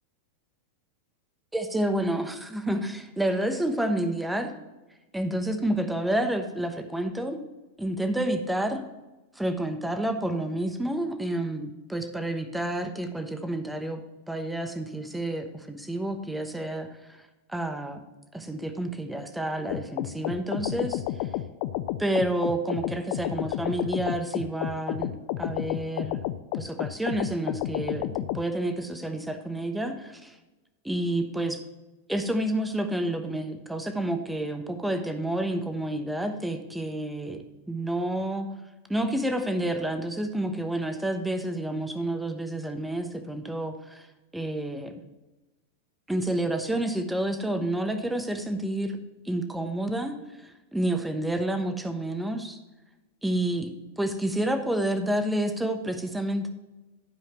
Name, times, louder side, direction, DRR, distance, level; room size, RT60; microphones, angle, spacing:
voice 1, 1.5-4.5 5.1-7.4 7.8-8.8 9.4-14.0 14.3-16.9 17.2-18.0 18.3-21.3 22.0-25.1 25.4-26.2 26.5-30.4 30.8-31.6 32.1-37.4 37.7-38.5 38.9-44.1 44.3-44.9 46.1-48.9 49.2-52.6 53.2-53.7 54.0-56.5, right 1 dB, 5° right, 7 dB, 1.0 m, -29 dB
sound 1, 19.7-28.4, left 14 dB, 55° left, 0.4 m, -31 dB
11.5 x 4.9 x 4.5 m, 1.1 s
hypercardioid pair, 105°, 0 cm